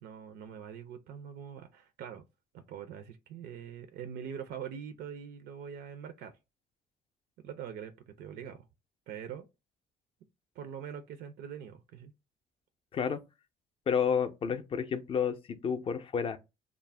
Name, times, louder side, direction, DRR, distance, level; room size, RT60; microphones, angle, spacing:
voice 1, 0.0-2.2 2.5-6.4 7.4-8.6 9.1-9.5 10.6-12.1, right 8 dB, 75° right, 0.4 m, -43 dB
voice 2, 13.9-16.4, left 7 dB, 35° left, 0.4 m, -30 dB
2.4 x 2.0 x 3.2 m
cardioid pair, 110°, 17 cm